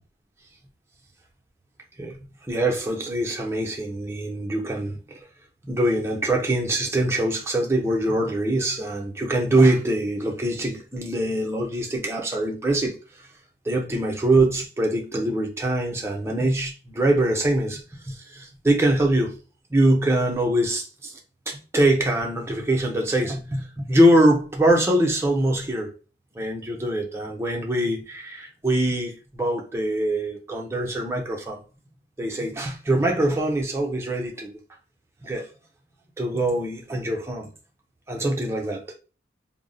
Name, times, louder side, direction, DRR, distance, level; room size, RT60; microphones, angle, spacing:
voice 1, 2.5-5.2 5.6-13.3 13.6-19.4 19.7-21.2 21.5-25.9 26.3-31.6 32.2-34.6 35.2-35.5 36.2-37.5 38.1-38.8, right 1 dB, 15° right, 0.5 m, -23 dB
2.2 x 2.0 x 3.8 m
head